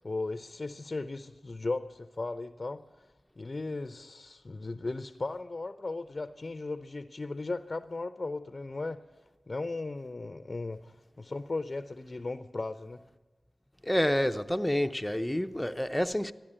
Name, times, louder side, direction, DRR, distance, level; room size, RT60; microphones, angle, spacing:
voice 1, 0.0-2.8 3.4-9.0 9.5-13.0, left 3 dB, 50° left, 0.6 m, -36 dB
voice 2, 13.8-16.3, left 1 dB, 10° left, 0.7 m, -28 dB
13.5 x 10.5 x 8.8 m
cardioid pair, 45°, 0 cm